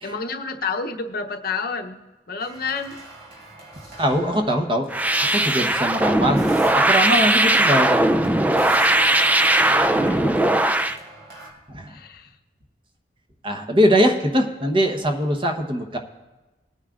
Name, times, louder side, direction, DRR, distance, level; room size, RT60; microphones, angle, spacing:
voice 1, 0.0-2.0 2.3-3.0 5.9-6.2 10.1-10.5 11.9-12.3, left 4 dB, 55° left, 5 dB, 0.8 m, -30 dB
sound 1, 2.4-11.5, right 2 dB, 55° right, 3.6 m, -45 dB
voice 2, 4.0-4.9 5.3-6.4 6.7-8.3 11.7-12.0 13.4-16.0, equal, 30° right, 4 dB, 1.0 m, -21 dB
sound 2, 4.9-11.0, right 1 dB, 10° right, 0.4 m, -19 dB
20.5 x 9.6 x 2.5 m, 1.1 s
head